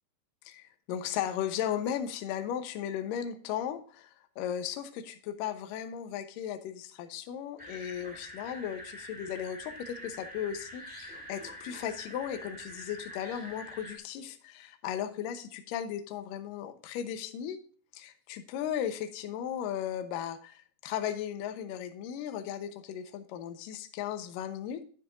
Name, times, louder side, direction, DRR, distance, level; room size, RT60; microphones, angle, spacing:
voice 1, 0.5-17.6 17.9-24.8, left 9 dB, 75° left, 7 dB, 2.2 m, -36 dB
sound 1, 7.6-14.0, left 1 dB, 5° right, 1.1 m, -45 dB
9.9 x 9.6 x 2.6 m, 0.42 s
omnidirectional pair, 4.9 m